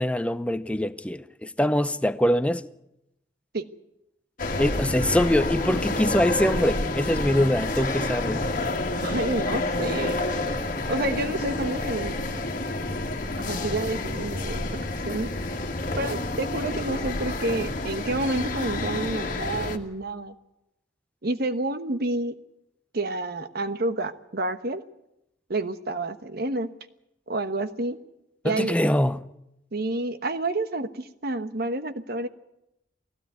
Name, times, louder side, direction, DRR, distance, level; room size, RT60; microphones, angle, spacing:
voice 1, 0.0-2.7 4.6-8.4 28.4-29.3, left 1 dB, 5° left, 0.6 m, -23 dB
sound 1, 4.4-19.8, left 2 dB, 50° left, 1.9 m, -29 dB
voice 2, 9.0-10.2 10.9-12.3 13.5-14.7 15.0-15.3 16.0-20.3 21.2-22.4 22.9-24.8 25.5-26.7 27.3-28.0 28.4-28.8 29.7-32.3, right 2 dB, 55° right, 1.2 m, -29 dB
18.5 x 16.0 x 9.4 m
head